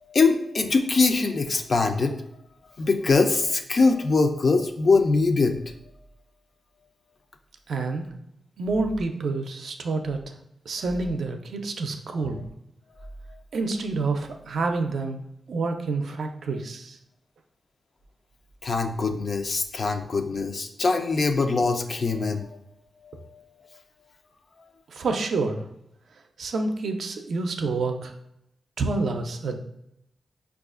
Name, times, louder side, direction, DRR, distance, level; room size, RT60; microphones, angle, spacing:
voice 1, 0.0-2.2 2.8-5.6 12.2-12.3 18.6-22.6 23.0-23.8, left 4 dB, 55° left, 6 dB, 0.4 m, -23 dB
voice 2, 7.7-8.1 8.6-10.3 10.7-12.4 13.5-15.2 15.5-17.0 24.9-25.6 26.4-28.1 28.8-29.6, right 3 dB, 75° right, 4 dB, 0.4 m, -28 dB
4.7 x 2.3 x 2.4 m, 0.78 s
cardioid pair, 60°, 0 cm